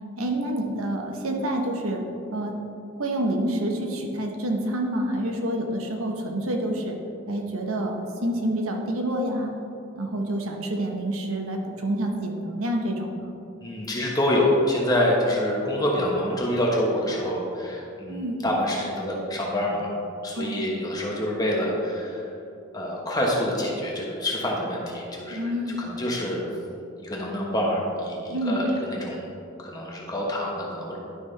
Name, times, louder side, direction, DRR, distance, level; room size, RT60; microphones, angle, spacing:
voice 1, 0.2-2.0 2.3-2.6 3.0-7.0 7.3-9.5 9.9-13.3 18.1-18.4 20.3-20.6 25.3-25.8 28.3-28.6, right 1 dB, 90° right, 2 dB, 1.0 m, -28 dB
voice 2, 13.6-19.9 20.2-22.3 22.7-26.4 27.0-29.3 29.6-31.0, left 1 dB, 20° left, -3 dB, 1.2 m, -26 dB
11.0 x 5.7 x 3.3 m, 2.7 s
head